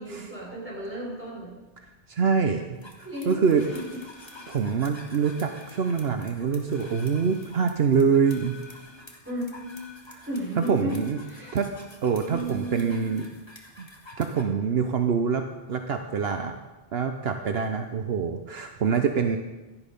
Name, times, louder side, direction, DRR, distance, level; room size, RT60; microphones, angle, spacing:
voice 1, 0.0-1.5 2.4-2.5 3.0-3.4 3.7-3.8 9.2-9.6 10.3-11.0 11.3-11.6, equal, 10° right, -6 dB, 6.3 m, -34 dB
voice 2, 2.1-3.6 4.5-8.6 10.1-10.3 10.6-11.2 11.5-11.7 12.0-13.3 13.8-13.9 14.2-16.6 16.9-19.4, right 6 dB, 70° right, 6 dB, 1.1 m, -25 dB
sound 1, 2.8-14.4, right 2 dB, 25° left, 2.2 m, -42 dB
17.0 x 12.5 x 5.3 m, 1.1 s
omnidirectional pair, 1.1 m